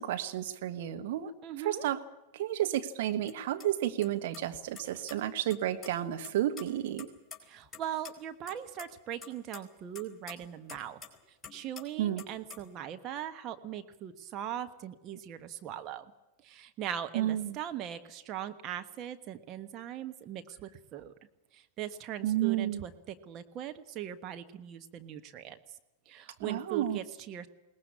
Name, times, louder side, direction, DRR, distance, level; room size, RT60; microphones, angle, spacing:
voice 1, 0.0-1.3 1.6-2.0 2.3-7.1 12.0-12.2 17.1-17.6 22.2-22.8 26.4-27.0, right 12 dB, 55° right, 7 dB, 1.4 m, -31 dB
voice 2, 1.4-1.9 7.4-11.0 11.5-16.1 16.4-21.1 21.5-25.8 26.0-27.5, right 10 dB, 35° right, 7 dB, 1.4 m, -40 dB
sound 1, 3.3-3.4 3.6-3.7 4.0-4.1 4.3-5.1 5.5-5.9 6.2-7.8 8.0-8.1 8.5-8.9 9.2-11.2 11.4-11.8 12.2-12.7, left 5 dB, 10° left, 4.5 m, -46 dB
22.0 x 19.0 x 8.6 m, 1.0 s
figure-of-eight pair, 90°, 0 cm